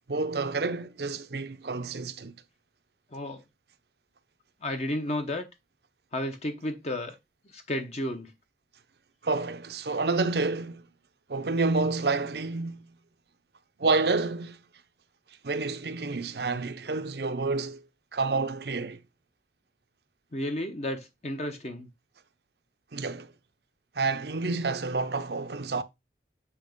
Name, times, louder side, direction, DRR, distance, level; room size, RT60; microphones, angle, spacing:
voice 1, 0.1-2.3 9.2-10.8 11.3-12.9 13.8-14.6 15.4-17.8 18.1-19.0 22.9-23.3 23.9-25.8, right 3 dB, 65° right, 0.7 m, -29 dB
voice 2, 3.1-3.4 4.6-5.5 6.1-7.2 7.5-8.3 20.3-21.9, left 1 dB, 40° left, 0.9 m, -32 dB
8.3 x 2.9 x 5.1 m
head